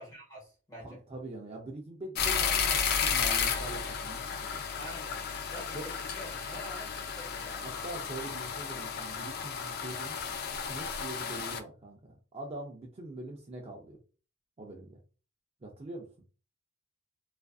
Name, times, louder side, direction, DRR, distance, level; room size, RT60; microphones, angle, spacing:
voice 1, 0.0-1.0 4.8-5.2 5.5-7.7, equal, 15° left, -3 dB, 1.1 m, -46 dB
voice 2, 0.8-4.6 5.7-5.9 7.6-10.2 10.5-14.0 14.6-15.0 15.6-16.1, right 2 dB, 30° right, 1 dB, 0.4 m, -43 dB
sound 1, 2.1-11.6, left 6 dB, 45° left, 0.3 m, -33 dB
2.4 x 2.4 x 2.3 m, 0.35 s
head